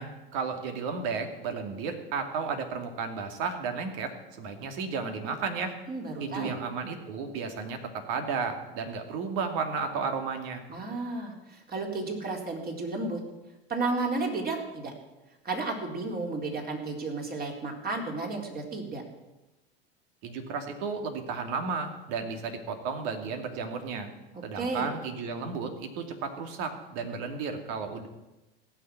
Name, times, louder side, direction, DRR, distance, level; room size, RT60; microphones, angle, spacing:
voice 1, 0.0-5.7 6.2-10.6 20.2-24.1 24.4-28.1, right 5 dB, 65° right, 5 dB, 2.6 m, -33 dB
voice 2, 5.9-6.6 10.7-13.2 13.7-14.9 15.4-19.0 24.5-24.9, right 3 dB, 30° right, 1 dB, 4.0 m, -32 dB
16.5 x 6.9 x 9.5 m, 1.0 s
hypercardioid pair, 90°, 30 cm